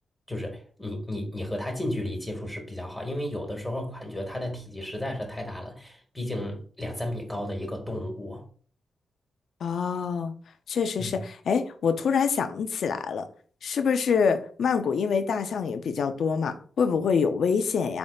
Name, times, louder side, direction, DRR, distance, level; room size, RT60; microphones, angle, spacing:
voice 1, 0.3-8.4 11.0-11.1, left 1 dB, 10° left, 1.3 m, -33 dB
voice 2, 9.6-10.3 10.7-13.2 13.6-18.0, left 6 dB, 75° left, 0.4 m, -26 dB
3.9 x 3.4 x 2.3 m
cardioid pair, 55°, 0 cm